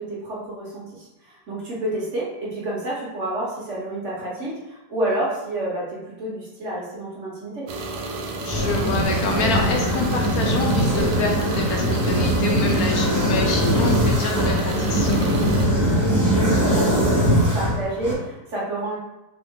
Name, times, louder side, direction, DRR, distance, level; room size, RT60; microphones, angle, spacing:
voice 1, 0.0-7.7 16.0-19.0, right 1 dB, 50° right, -5 dB, 1.2 m, -29 dB
sound 1, 7.7-15.7, right 2 dB, 75° right, 1.1 m, -31 dB
voice 2, 8.4-15.3, left 4 dB, 70° left, 1 dB, 1.0 m, -27 dB
sound 2, 8.5-18.1, equal, 15° right, 0.6 m, -21 dB
3.7 x 3.1 x 3.6 m, 0.96 s
omnidirectional pair, 1.8 m